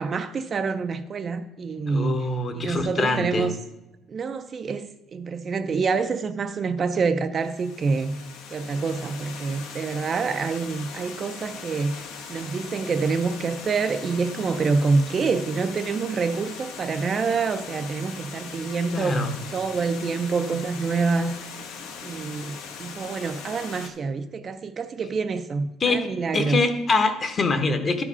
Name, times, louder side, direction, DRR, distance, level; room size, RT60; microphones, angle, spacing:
voice 1, 0.0-2.2 2.5-3.5 4.1-8.2 8.5-19.2 19.5-21.4 22.0-26.6, right 4 dB, 30° right, 0.4 m, -26 dB
voice 2, 1.9-3.5 18.9-19.3 25.8-26.1 26.3-28.0, left 3 dB, 25° left, 0.8 m, -24 dB
Water, 7.4-23.9, left 6 dB, 80° left, 1.2 m, -40 dB
11.5 x 4.8 x 5.4 m
cardioid pair, 160°, 0 cm